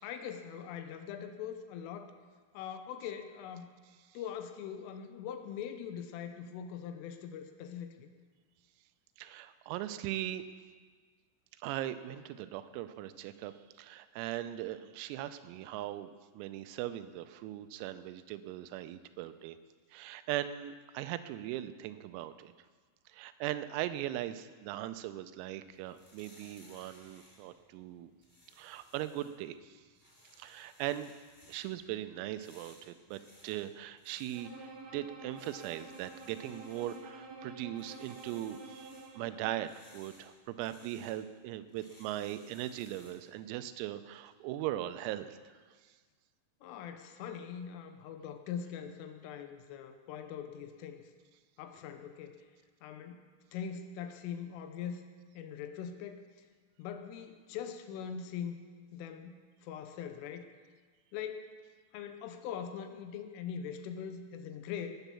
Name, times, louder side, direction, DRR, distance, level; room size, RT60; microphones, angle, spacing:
voice 1, 0.0-2.1 2.5-3.7 4.1-8.1 46.6-51.1 51.6-52.5 52.8-53.2 53.5-55.0 55.3-56.2 56.8-58.6 58.9-60.5 61.1-61.6 61.9-64.9, left 8 dB, 80° left, 8 dB, 3.3 m, -42 dB
voice 2, 9.2-10.4 11.6-19.6 19.9-22.5 23.1-28.1 28.6-29.8 30.4-31.1 31.5-45.5, right 13 dB, 90° right, 11 dB, 3.4 m, -39 dB
sound 1, 25.6-43.3, left 1 dB, 10° left, 3.2 m, -62 dB
Bowed string instrument, 34.3-39.7, right 3 dB, 35° right, 1.6 m, -49 dB
19.5 x 8.2 x 6.9 m, 1.5 s
omnidirectional pair, 6.0 m